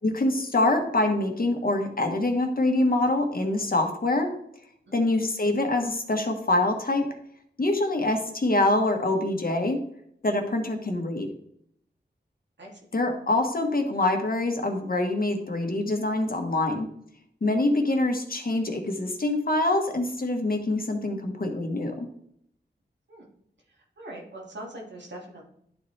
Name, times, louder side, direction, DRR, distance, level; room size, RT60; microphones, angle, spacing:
voice 1, 0.0-4.3 4.9-7.0 7.6-9.8 10.2-11.3 12.9-16.9 17.4-22.1, left 2 dB, 50° left, 3 dB, 1.4 m, -25 dB
voice 2, 23.8-25.4, right 1 dB, 75° right, -2 dB, 2.2 m, -42 dB
11.0 x 4.2 x 3.3 m, 0.71 s
wide cardioid pair, 55°, 18 cm